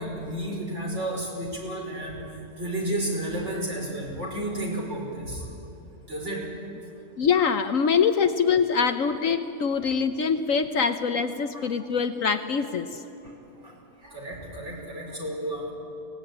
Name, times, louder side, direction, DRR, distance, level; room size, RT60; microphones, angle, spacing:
voice 1, 0.0-2.3 2.6-5.4 6.1-6.4 9.7-9.9 11.5-11.7 13.2-13.3 13.6-13.7 14.0-15.7, right 1 dB, 45° right, -2 dB, 5.5 m, -32 dB
voice 2, 7.2-13.0, left 6 dB, 60° left, 9 dB, 1.1 m, -24 dB
23.0 x 18.0 x 9.9 m, 2.8 s
omnidirectional pair, 1.7 m